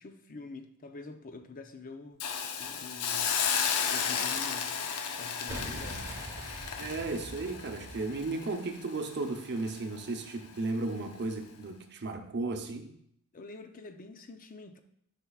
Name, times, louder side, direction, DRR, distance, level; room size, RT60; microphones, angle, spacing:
voice 1, 0.0-2.2 2.6-3.4 3.9-4.8 5.2-6.1 13.3-14.8, left 3 dB, 40° left, 7 dB, 0.6 m, -46 dB
Hiss, 2.2-9.2 9.6-9.8, left 7 dB, 85° left, 0.6 m, -33 dB
Boom, 5.5-8.5, right 1 dB, 15° right, 0.9 m, -43 dB
voice 2, 5.7-6.0 6.8-12.9, right 3 dB, 50° right, 5 dB, 0.7 m, -35 dB
10.0 x 5.9 x 2.4 m, 0.70 s
head